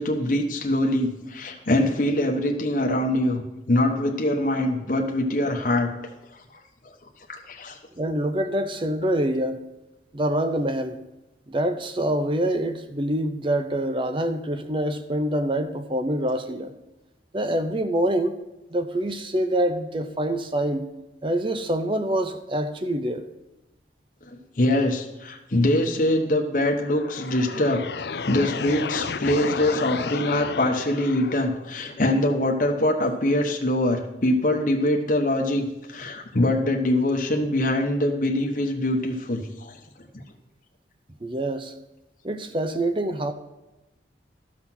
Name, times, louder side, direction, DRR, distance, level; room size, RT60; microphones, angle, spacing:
voice 1, 0.0-5.9 7.3-7.8 24.3-27.8 28.3-39.7, left 1 dB, 45° left, 2 dB, 1.1 m, -23 dB
voice 2, 8.0-9.6 10.1-11.0 11.5-16.7 17.3-18.4 18.7-20.9 21.2-23.2 41.2-41.7 42.2-43.3, right 1 dB, 30° right, 9 dB, 0.6 m, -25 dB
sound 1, 26.7-31.7, left 5 dB, 70° left, 0.5 m, -32 dB
13.0 x 6.0 x 6.1 m, 1.0 s
head